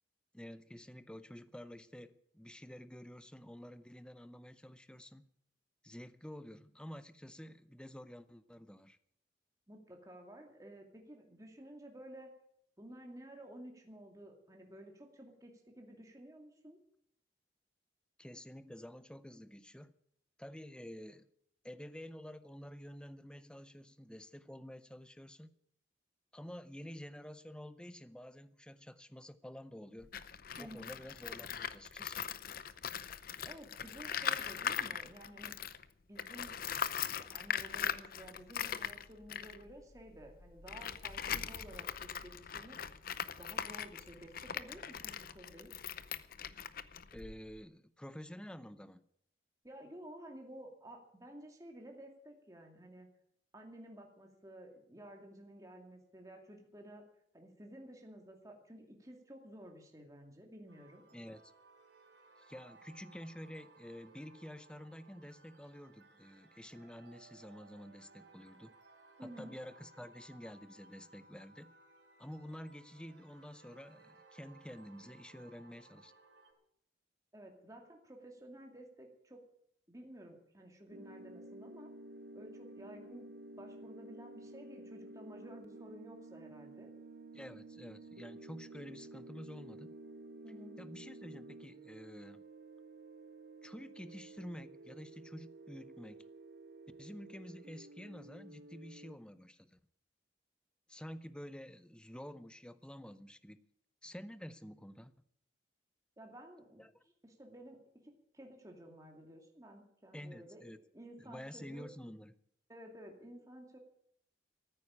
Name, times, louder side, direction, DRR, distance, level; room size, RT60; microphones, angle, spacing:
voice 1, 0.3-5.3 5.8-9.0 18.2-19.9 20.4-21.3 21.6-25.5 26.3-30.1 30.6-32.3 47.1-49.0 61.1-61.5 62.4-68.7 69.2-71.7 72.2-76.1 87.3-89.9 90.8-92.4 93.6-96.3 97.0-99.8 100.9-103.6 104.0-105.1 106.8-107.0 110.1-110.8 111.2-112.3, equal, 5° left, 14 dB, 0.7 m, -50 dB
voice 2, 9.7-12.3 12.8-16.8 30.6-30.9 33.4-35.6 36.1-36.6 37.0-42.8 43.4-45.7 49.6-53.1 53.5-57.0 57.3-61.0 69.2-69.5 77.3-79.4 79.9-81.9 82.3-83.3 83.5-86.9 90.4-90.8 106.2-106.8 107.2-110.6 110.9-111.9 112.7-113.8, right 1 dB, 20° right, 2 dB, 2.3 m, -53 dB
Tools, 30.0-35.8 36.2-47.6, left 8 dB, 55° left, 0.7 m, -40 dB
sound 1, 60.7-76.5, right 3 dB, 90° right, 4.0 m, -62 dB
sound 2, 80.9-99.2, right 2 dB, 55° right, 0.7 m, -52 dB
14.5 x 9.4 x 8.7 m, 0.70 s
head